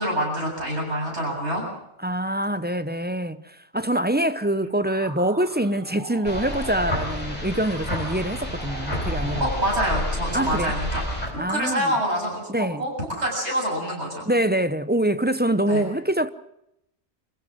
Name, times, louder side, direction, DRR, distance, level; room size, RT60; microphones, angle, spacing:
voice 1, 0.0-1.7 4.6-4.7 9.4-11.0 11.3-14.3 15.7-15.8, equal, 80° right, 8.2 m, -26 dB
voice 2, 2.0-9.5 10.3-10.7 11.4-11.9 12.5-12.9 14.3-16.3, right 1 dB, 10° right, 0.6 m, -25 dB
sound 1, 4.7-10.1, right 3 dB, 45° right, 2.5 m, -40 dB
sound 2, 6.2-11.3, left 1 dB, 35° left, 5.2 m, -29 dB
25.5 x 16.0 x 7.7 m
omnidirectional pair, 1.1 m